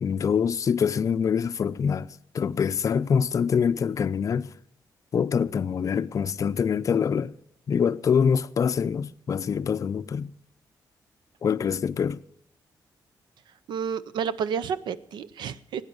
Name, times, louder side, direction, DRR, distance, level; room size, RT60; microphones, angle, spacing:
voice 1, 0.0-4.5 5.1-7.3 7.7-10.3 11.4-12.2, left 7 dB, 45° left, 0.5 m, -25 dB
voice 2, 13.7-15.8, right 7 dB, 90° right, 0.7 m, -30 dB
17.0 x 9.6 x 6.4 m
cardioid pair, 115°, 8 cm